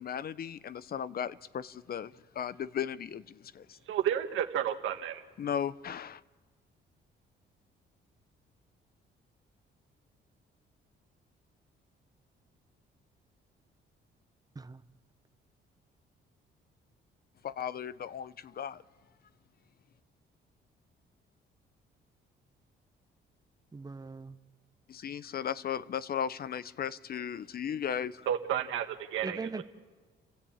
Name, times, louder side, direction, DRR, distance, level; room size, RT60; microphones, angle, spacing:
voice 1, 0.0-3.8 5.4-6.2 17.4-18.8 24.9-28.3, left 8 dB, 50° left, 16 dB, 0.7 m, -36 dB
voice 2, 3.9-5.2 28.3-29.6, right 10 dB, 85° right, 6 dB, 1.6 m, -31 dB
voice 3, 23.7-24.4 29.2-29.6, right 4 dB, 20° right, 11 dB, 1.0 m, -40 dB
29.5 x 13.5 x 8.8 m, 1.4 s
cardioid pair, 90°, 20 cm